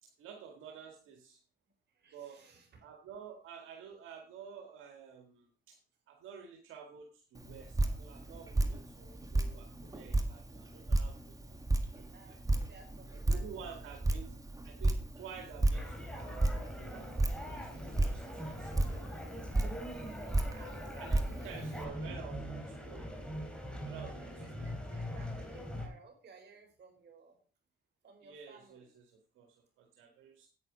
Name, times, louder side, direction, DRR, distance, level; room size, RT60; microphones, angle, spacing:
voice 1, 0.0-1.4 2.1-2.4 2.8-5.8 6.1-11.4 11.9-12.4 13.3-14.3 14.6-16.4 16.8-18.7 20.9-23.1 23.9-24.3 24.6-24.7 28.2-30.5, right 7 dB, 85° right, 2 dB, 1.9 m, -51 dB
voice 2, 1.9-2.8 9.1-9.2 11.9-14.2 19.0-19.8 20.5-20.7 21.2-21.6 24.1-27.4 28.0-28.9, right 4 dB, 60° right, 3 dB, 4.8 m, -59 dB
Drip, 7.3-21.8, right 2 dB, 15° right, 1.8 m, -34 dB
sound 1, 15.7-25.9, equal, 5° left, 4.1 m, -42 dB
9.6 x 8.9 x 5.0 m, 0.40 s
cardioid pair, 90°, 20 cm